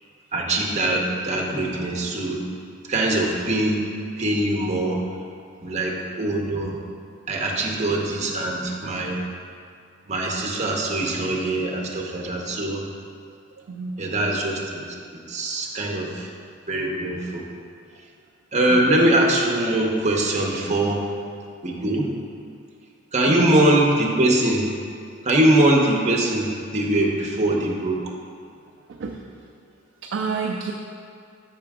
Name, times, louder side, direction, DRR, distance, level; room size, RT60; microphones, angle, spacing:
voice 1, 0.3-2.4 2.9-3.8 4.2-5.0 5.6-6.8 7.3-9.2 10.1-12.8 14.0-14.8 15.1-16.3 16.7-17.4 18.5-21.1 21.6-22.1 23.1-24.6 25.2-28.0, right 1 dB, 35° right, -1 dB, 0.9 m, -22 dB
voice 2, 13.7-14.0 18.7-19.1 23.3-23.4 28.9-29.2 30.0-30.7, right 4 dB, 65° right, 0 dB, 0.4 m, -29 dB
6.8 x 5.6 x 3.6 m, 2.3 s
head